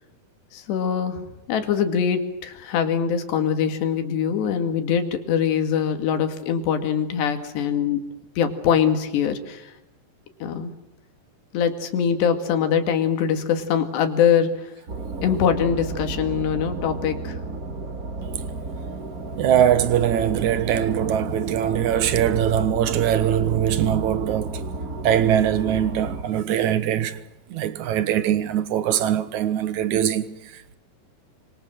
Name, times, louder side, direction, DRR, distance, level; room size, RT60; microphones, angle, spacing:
voice 1, 0.5-1.2 1.5-8.1 8.4-9.7 10.4-10.7 11.5-14.7 15.2-17.4, left 7 dB, 85° left, 4.4 m, -23 dB
sound 1, 14.9-26.2, right 3 dB, 40° right, 1.3 m, -32 dB
voice 2, 19.4-24.6 25.0-27.2 27.5-30.8, right 10 dB, 60° right, 2.1 m, -22 dB
26.0 x 25.5 x 7.7 m
omnidirectional pair, 4.7 m